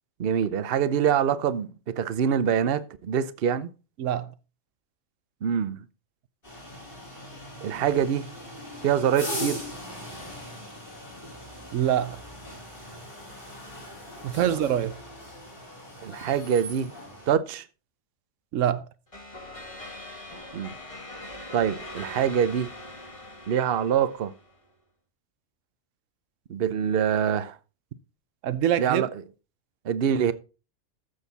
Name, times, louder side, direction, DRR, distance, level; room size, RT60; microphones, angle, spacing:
voice 1, 0.2-1.7 2.0-3.7 5.4-5.8 7.6-8.2 8.8-9.6 16.0-16.9 17.3-17.6 20.5-20.7 21.5-22.7 23.5-24.3 26.5-27.6 28.8-29.1 29.8-30.3, right 8 dB, 55° right, 0.9 m, -25 dB
voice 2, 4.0-4.3 11.7-12.2 14.2-15.0 18.5-18.9 28.4-29.0, right 10 dB, 85° right, 1.0 m, -25 dB
sound 1, 6.4-17.3, equal, 45° left, 4.8 m, -40 dB
sound 2, 19.1-24.6, left 1 dB, 25° left, 1.7 m, -42 dB
14.0 x 6.6 x 4.1 m
omnidirectional pair, 1.3 m